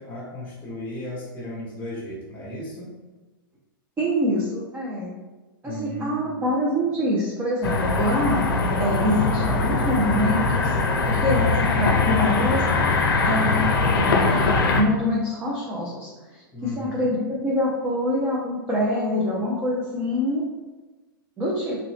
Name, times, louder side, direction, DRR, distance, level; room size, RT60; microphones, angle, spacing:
voice 1, 0.0-2.9 5.6-6.4 16.5-17.1, left 1 dB, 15° left, -6 dB, 0.9 m, -35 dB
voice 2, 4.0-5.1 5.6-8.4 8.8-10.7 11.1-12.6 13.2-13.6 13.9-14.5 14.8-16.4 16.8-17.2 17.4-20.4 21.4-21.8, left 1 dB, 15° right, -5 dB, 0.6 m, -25 dB
sound 1, 7.6-14.8, left 3 dB, 80° left, 0.5 m, -21 dB
3.0 x 2.6 x 3.1 m, 1.2 s
hypercardioid pair, 115°, 12 cm